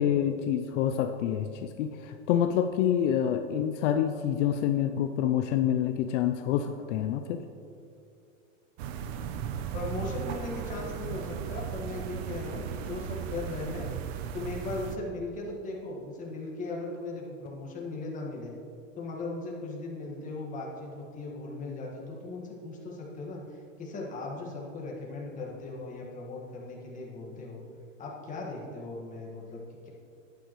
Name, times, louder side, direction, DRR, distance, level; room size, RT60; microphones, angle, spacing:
voice 1, 0.0-7.4, left 9 dB, 65° left, 7 dB, 0.6 m, -27 dB
sound 1, 8.8-15.0, right 8 dB, 50° right, 0.7 m, -36 dB
voice 2, 9.7-13.9 14.3-18.5 19.0-27.6 28.0-29.9, left 3 dB, 20° left, -3 dB, 1.7 m, -38 dB
11.0 x 9.3 x 3.1 m, 2.6 s
supercardioid pair, 145°, 39 cm